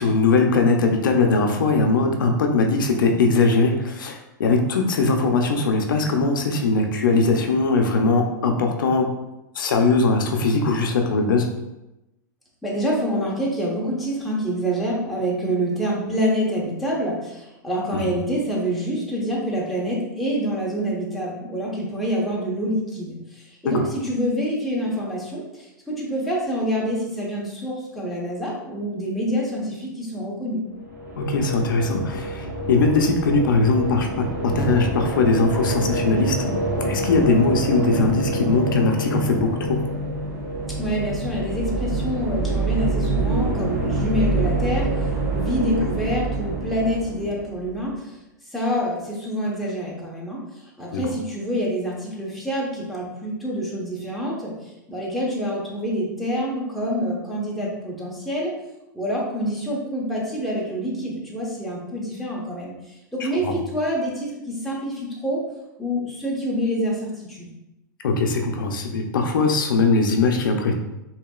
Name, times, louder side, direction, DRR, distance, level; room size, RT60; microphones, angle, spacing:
voice 1, 0.0-9.1 9.5-11.5 23.6-23.9 31.2-36.4 36.8-39.8 50.9-51.1 63.2-63.5 68.0-70.7, left 3 dB, 85° left, 3 dB, 0.6 m, -20 dB
voice 2, 12.6-30.6 40.8-44.9 45.3-48.1 48.5-50.4 50.8-58.5 58.9-65.4 65.8-67.5, equal, ahead, -5 dB, 1.1 m, -26 dB
sound 1, 30.8-47.8, right 2 dB, 30° right, 1.2 m, -26 dB
4.8 x 2.9 x 2.4 m, 0.94 s
hypercardioid pair, 130°, 11 cm